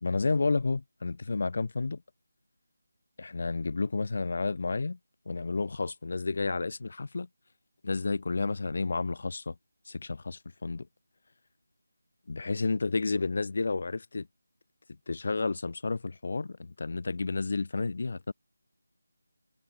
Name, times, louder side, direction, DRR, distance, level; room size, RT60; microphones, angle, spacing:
voice 1, 0.0-2.0 3.2-5.0 5.3-7.3 7.8-9.6 9.9-10.9 12.3-14.3 15.1-18.3, left 3 dB, 50° left, 0.5 m, -31 dB
figure-of-eight pair, 160°, 0 cm